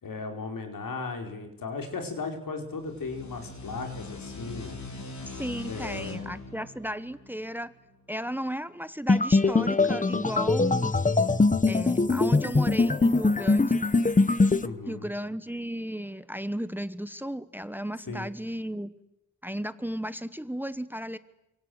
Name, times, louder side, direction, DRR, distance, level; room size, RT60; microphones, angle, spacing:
voice 1, 0.0-4.8 5.7-6.2 14.6-15.1 18.1-18.3, left 4 dB, 80° left, 4 dB, 4.9 m, -36 dB
sound 1, 2.7-8.1, left 3 dB, 60° left, 4.9 m, -42 dB
voice 2, 5.3-7.7 8.1-10.9 11.7-13.8 14.9-18.9 19.4-21.2, equal, 5° right, 14 dB, 1.1 m, -34 dB
sound 2, 9.1-14.7, left 3 dB, 25° left, 1.1 m, -22 dB
28.5 x 25.5 x 8.1 m, 0.92 s
wide cardioid pair, 95°, 33 cm